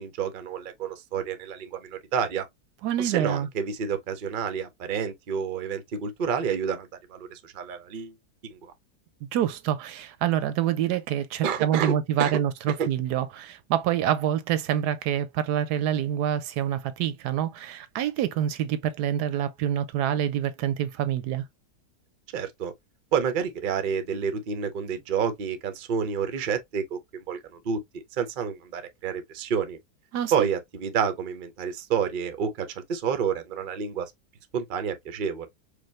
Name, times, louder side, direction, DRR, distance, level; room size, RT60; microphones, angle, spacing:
voice 1, 0.0-2.5 3.0-8.1 8.5-8.7 11.4-12.4 12.8-12.9 22.3-22.7 23.1-27.8 28.1-29.8 30.3-34.1 34.5-35.5, right 7 dB, 55° right, 0.6 m, -29 dB
voice 2, 2.8-3.5 9.3-21.4 30.1-30.3, right 10 dB, 85° right, 1.2 m, -26 dB
4.9 x 2.3 x 3.1 m
omnidirectional pair, 1.7 m